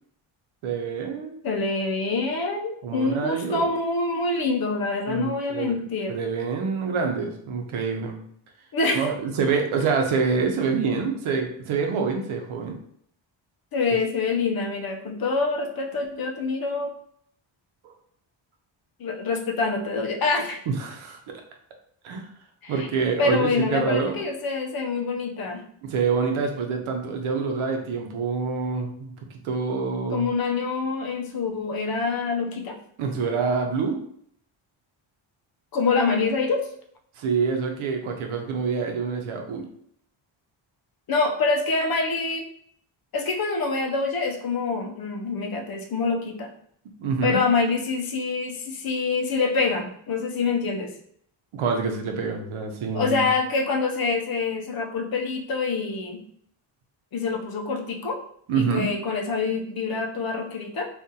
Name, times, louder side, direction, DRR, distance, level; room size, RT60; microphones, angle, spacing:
voice 1, 0.6-1.4 2.8-3.7 5.1-5.8 6.1-8.2 8.9-12.7 17.8-17.9 20.7-21.3 22.0-22.3 22.7-24.2 25.8-30.3 33.0-34.0 37.2-39.7 47.0-47.4 51.5-53.3 58.5-58.9, right 5 dB, 85° right, 3 dB, 0.8 m, -26 dB
voice 2, 1.4-6.2 8.7-9.1 13.7-16.9 19.0-20.7 22.6-22.9 23.2-25.6 30.1-32.8 35.7-36.6 41.1-42.4 43.1-46.5 47.2-50.9 52.9-56.2 57.1-58.2 58.5-60.9, left 4 dB, 50° left, 2 dB, 0.6 m, -26 dB
2.7 x 2.5 x 3.7 m, 0.67 s
wide cardioid pair, 140°, 48 cm